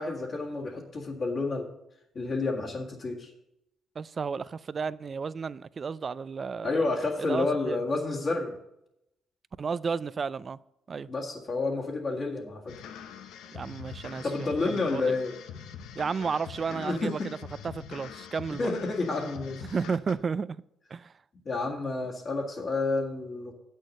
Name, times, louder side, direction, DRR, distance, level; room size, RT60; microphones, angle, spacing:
voice 1, 0.0-1.7 2.2-3.3 6.6-8.6 11.1-12.7 14.2-15.3 16.7-17.3 18.6-19.7 21.5-23.5, left 3 dB, 45° left, 2.0 m, -30 dB
voice 2, 4.0-7.8 9.6-10.6 10.9-11.1 13.5-14.2 14.7-15.2 16.0-17.2 17.6-18.7 19.6-20.6 20.9-21.1, right 5 dB, 40° right, 0.3 m, -33 dB
sound 1, 12.7-20.1, left 8 dB, 90° left, 0.7 m, -44 dB
8.2 x 6.3 x 6.5 m
cardioid pair, 90°, 0 cm